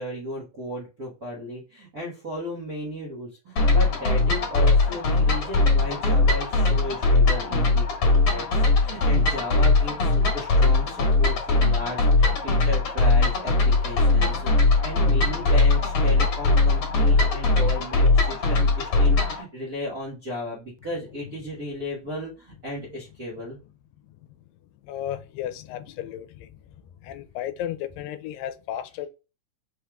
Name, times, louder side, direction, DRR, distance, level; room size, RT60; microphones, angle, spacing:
voice 1, 0.0-23.6, left 1 dB, 55° right, 1.0 m, -35 dB
sound 1, 3.6-19.4, left 3 dB, 50° left, 1.7 m, -20 dB
voice 2, 24.8-26.5 27.0-29.1, left 11 dB, 85° left, 2.2 m, -34 dB
5.6 x 3.1 x 2.3 m
omnidirectional pair, 3.9 m